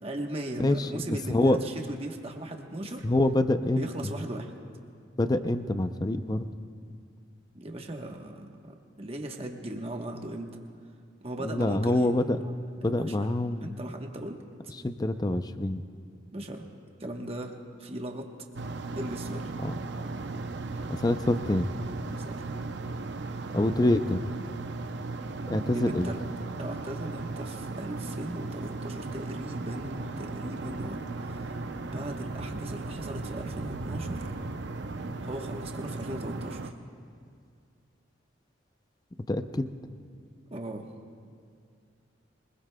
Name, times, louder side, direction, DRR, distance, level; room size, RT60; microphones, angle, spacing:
voice 1, 0.0-3.0 3.8-4.5 7.5-10.6 11.2-12.5 12.8-13.3 13.6-14.4 16.3-16.7 17.0-18.3 18.9-19.5 22.2-22.4 25.5-26.2 26.6-34.4 35.2-36.7 40.5-40.9, right 1 dB, 30° right, 3 dB, 1.1 m, -38 dB
voice 2, 0.6-1.0 1.3-1.6 3.0-3.9 5.2-6.5 11.4-12.4 12.8-13.7 14.8-15.8 19.6-19.7 20.9-21.8 23.5-24.2 25.5-26.1 39.3-39.7, left 1 dB, 20° left, 10 dB, 0.5 m, -26 dB
sound 1, 18.6-36.7, right 3 dB, 65° right, 0.6 m, -36 dB
24.0 x 21.0 x 2.2 m, 2.2 s
head